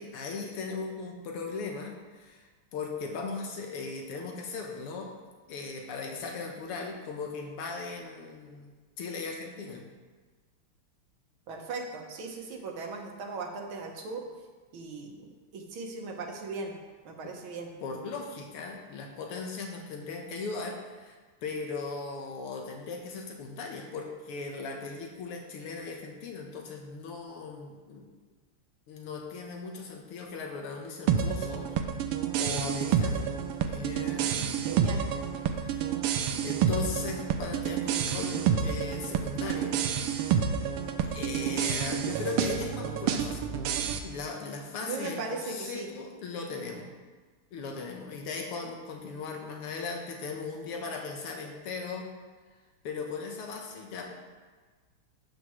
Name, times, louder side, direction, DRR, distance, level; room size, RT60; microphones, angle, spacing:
voice 1, 0.0-5.1 5.5-9.8 17.2-17.3 17.8-28.1 28.9-31.8 32.3-33.3 33.6-34.8 35.6-35.9 36.4-39.8 40.0-40.6 41.0-43.5 44.0-46.9 47.5-52.1 52.8-54.1, left 4 dB, 85° left, 2 dB, 2.0 m, -38 dB
voice 2, 11.5-14.2 14.7-16.7 17.1-17.7 34.7-35.0 44.8-45.9, right 4 dB, 70° right, 2 dB, 1.9 m, -38 dB
sound 1, 31.1-44.0, right 8 dB, 85° right, 1.6 m, -29 dB
12.0 x 8.5 x 3.1 m, 1.4 s
omnidirectional pair, 2.4 m